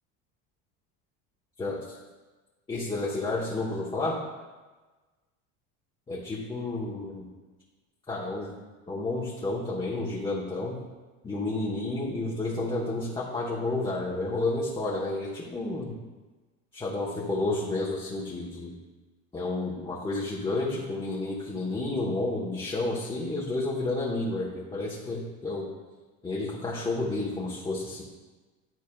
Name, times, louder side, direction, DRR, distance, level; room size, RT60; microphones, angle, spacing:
voice 1, 2.7-4.2 6.1-7.3 8.1-8.6 8.9-10.8 11.2-16.0 16.7-18.7 19.3-25.7 26.2-28.0, left 2 dB, 15° left, -5 dB, 1.0 m, -31 dB
10.5 x 4.0 x 2.3 m, 1.3 s
supercardioid pair, 115°, 36 cm